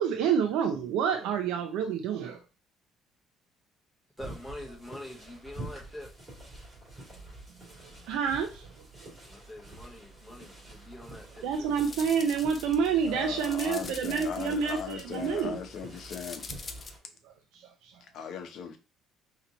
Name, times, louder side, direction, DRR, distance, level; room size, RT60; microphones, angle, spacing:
voice 1, 0.0-2.4 8.1-8.7 9.0-9.1 11.4-15.6 17.2-18.0, right 7 dB, 80° right, 0.6 m, -29 dB
voice 2, 4.2-6.1 9.3-11.7, left 1 dB, 5° left, 1.0 m, -44 dB
sound 1, 4.2-17.0, right 2 dB, 15° right, 2.8 m, -47 dB
sound 2, 11.1-11.2 11.7-12.9 13.3-15.4 16.0-16.9, left 4 dB, 20° left, 0.5 m, -44 dB
voice 3, 13.0-16.5 18.1-18.8, left 7 dB, 50° left, 0.8 m, -38 dB
4.4 x 3.0 x 3.9 m
cardioid pair, 180°, 0 cm